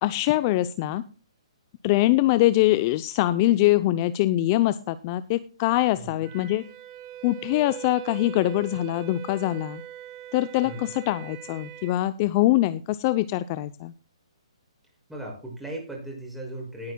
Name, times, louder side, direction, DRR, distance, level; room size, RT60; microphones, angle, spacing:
voice 1, 0.0-1.0 1.8-6.6 7.2-9.8 10.3-13.9, left 16 dB, 30° left, 14 dB, 0.5 m, -23 dB
Wind instrument woodwind instrument, 6.2-12.0, right 11 dB, 30° right, 1.8 m, -41 dB
voice 2, 15.1-16.9, right 1 dB, 5° right, -1 dB, 6.2 m, -37 dB
19.0 x 9.7 x 2.2 m, 0.36 s
hypercardioid pair, 145°, 3 cm